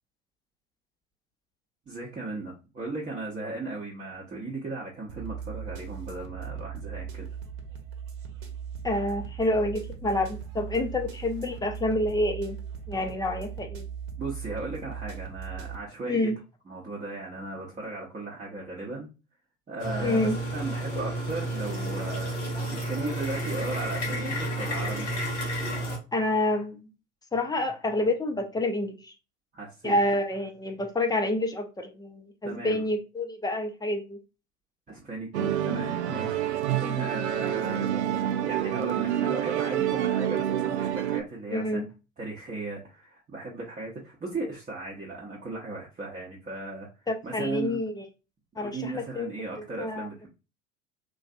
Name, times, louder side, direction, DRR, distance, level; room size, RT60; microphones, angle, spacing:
voice 1, 1.9-7.3 14.2-16.3 16.7-19.1 19.7-25.2 29.5-30.0 32.4-32.9 34.9-38.0 38.4-41.8 42.2-46.9 47.2-47.8 48.6-50.3, right 3 dB, 20° right, -4 dB, 0.8 m, -36 dB
sound 1, 5.1-15.8, right 7 dB, 60° right, 0.9 m, -39 dB
voice 2, 8.8-12.6 12.9-13.9 16.1-16.3 20.0-20.4 26.1-26.9 27.3-29.1 29.8-34.2 36.8-37.0 41.5-41.9 47.1-48.0 48.6-49.3 49.8-50.1, left 1 dB, 10° left, 4 dB, 0.5 m, -28 dB
sound 2, 19.8-26.0, right 1 dB, 75° left, 1.3 m, -31 dB
Musical instrument, 35.3-41.2, right 10 dB, 75° right, 0.5 m, -28 dB
3.2 x 2.6 x 2.4 m, 0.30 s
figure-of-eight pair, 70°, 34 cm